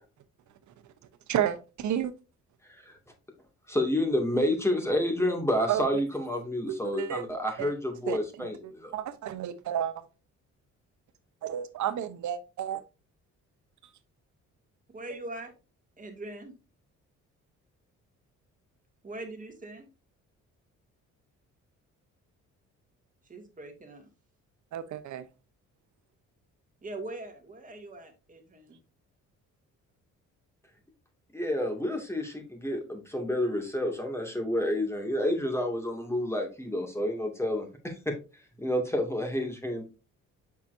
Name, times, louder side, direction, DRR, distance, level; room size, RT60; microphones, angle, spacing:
voice 1, 1.3-2.1 5.7-5.8 6.7-7.2 7.6-7.7 8.1-8.5 8.9-10.0 11.4-12.8 24.7-25.3, right 10 dB, 75° right, 12 dB, 1.0 m, -31 dB
voice 2, 3.7-8.9 31.3-38.2 38.6-39.8, left 1 dB, 10° left, 3 dB, 2.4 m, -29 dB
voice 3, 14.9-15.5 16.0-16.6 19.0-19.9 23.2-24.1 26.8-28.8, right 2 dB, 25° right, 4 dB, 2.3 m, -42 dB
7.1 x 5.9 x 2.7 m, 0.30 s
cardioid pair, 90°, 30 cm